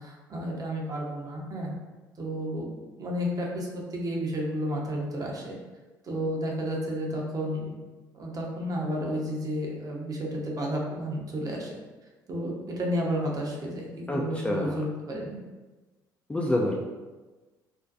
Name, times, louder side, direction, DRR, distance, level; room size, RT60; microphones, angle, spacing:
voice 1, 0.0-1.7 2.2-5.6 6.0-7.7 8.1-11.7 12.3-15.4, equal, 35° right, -1 dB, 0.6 m, -32 dB
voice 2, 14.1-14.8 16.3-16.8, left 1 dB, 10° left, -2 dB, 0.3 m, -27 dB
2.5 x 2.2 x 2.4 m, 1.2 s
figure-of-eight pair, 50°, 11 cm